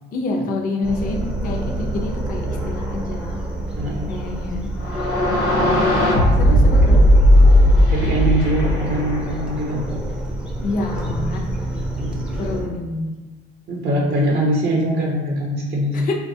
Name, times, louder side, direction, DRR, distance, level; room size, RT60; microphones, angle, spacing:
voice 1, 0.1-3.4 4.1-4.7 5.3-5.9 6.4-7.1 10.6-11.5 12.4-13.1 15.9-16.1, left 3 dB, 45° left, 0 dB, 0.5 m, -27 dB
sound 1, 0.8-12.6, right 1 dB, 5° right, 0.5 m, -28 dB
voice 2, 3.8-4.1 7.9-10.0 12.0-12.2 13.7-16.0, right 1 dB, 50° right, -3 dB, 0.6 m, -22 dB
sound 2, 4.8-9.6, equal, 75° left, 0.9 m, -15 dB
3.8 x 2.3 x 2.7 m, 1.2 s
cardioid pair, 125°, 20 cm